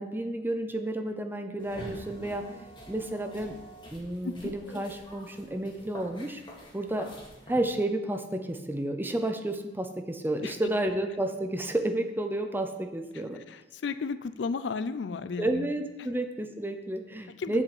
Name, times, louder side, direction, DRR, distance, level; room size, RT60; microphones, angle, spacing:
voice 1, 0.0-2.5 2.9-3.6 3.9-6.4 6.7-7.1 7.5-13.4 15.4-17.6, right 1 dB, 10° right, 6 dB, 0.6 m, -31 dB
sound 1, 1.6-7.6, equal, 25° left, 2.0 m, -46 dB
voice 2, 13.5-15.6 17.4-17.6, left 4 dB, 70° left, 12 dB, 0.4 m, -33 dB
7.7 x 5.0 x 7.2 m, 1.1 s
head